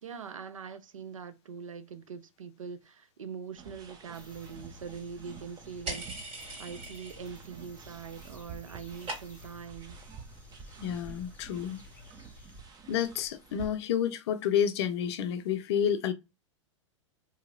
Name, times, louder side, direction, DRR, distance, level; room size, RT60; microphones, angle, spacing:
voice 1, 0.0-10.0, right 6 dB, 85° right, 0.4 m, -43 dB
sound 1, 3.5-13.7, right 5 dB, 25° right, 0.6 m, -50 dB
sound 2, 4.1-12.6, left 2 dB, 10° left, 0.8 m, -54 dB
sound 3, 5.9-7.5 7.7-8.3 8.5-9.6, right 2 dB, 45° right, 1.9 m, -41 dB
voice 2, 10.8-11.8 12.9-16.1, left 9 dB, 55° left, 0.5 m, -29 dB
2.8 x 2.7 x 2.4 m
hypercardioid pair, 100°, 16 cm